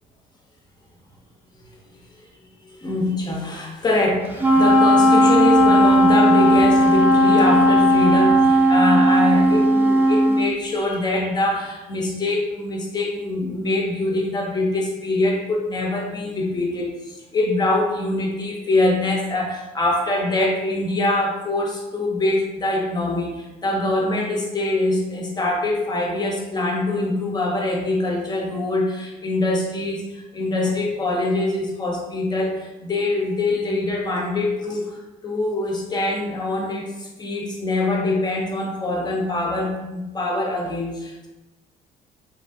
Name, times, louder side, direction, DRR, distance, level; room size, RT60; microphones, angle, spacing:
voice 1, 2.8-41.3, left 2 dB, 25° left, -1 dB, 0.7 m, -24 dB
Wind instrument woodwind instrument, 4.4-10.5, equal, 10° right, 0.3 m, -15 dB
2.9 x 2.6 x 2.4 m, 1.1 s
cardioid pair, 110°, 17 cm